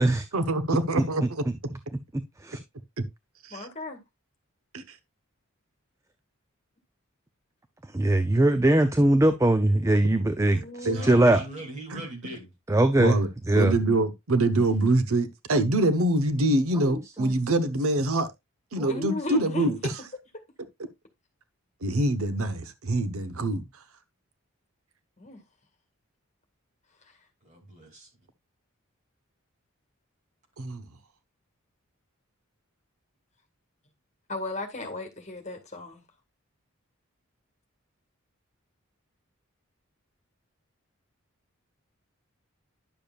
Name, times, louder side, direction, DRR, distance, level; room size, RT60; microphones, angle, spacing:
voice 1, 0.3-1.4 3.4-3.7 4.7-4.8 10.8-11.0 11.9-12.0 13.0-13.3 13.5-18.3 18.7-19.8 21.8-23.6 30.6-30.8, right 2 dB, 85° right, 0.9 m, -25 dB
voice 2, 3.5-4.0 10.4-11.2 11.5-11.6 18.9-19.7 25.2-25.4 27.0-27.2 34.3-36.0, left 2 dB, 30° left, 1.8 m, -36 dB
voice 3, 7.9-10.6 11.0-11.4 12.7-13.2 13.5-13.7 17.2-17.3 18.8-18.9, right 1 dB, 15° right, 0.4 m, -21 dB
voice 4, 10.8-12.5 27.4-28.1, right 1 dB, 35° right, 2.7 m, -40 dB
10.5 x 6.8 x 2.4 m
head